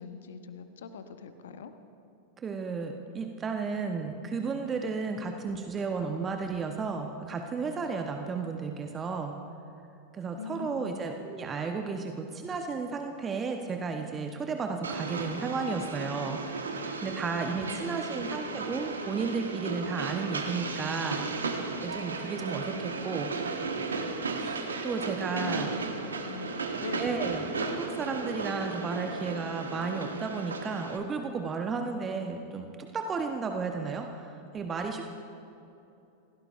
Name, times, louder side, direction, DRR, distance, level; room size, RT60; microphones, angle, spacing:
voice 1, 0.0-1.7 10.4-11.0 17.5-17.8 18.1-18.4 25.3-27.3, left 5 dB, 60° left, 9 dB, 1.0 m, -42 dB
voice 2, 2.4-9.4 10.1-21.2 21.8-23.3 24.4-25.7 27.0-35.1, right 4 dB, 20° right, 4 dB, 1.0 m, -33 dB
Train, 14.8-31.0, right 4 dB, 70° right, 1.4 m, -35 dB
28.5 x 16.5 x 2.6 m, 2.8 s
figure-of-eight pair, 90°, 0 cm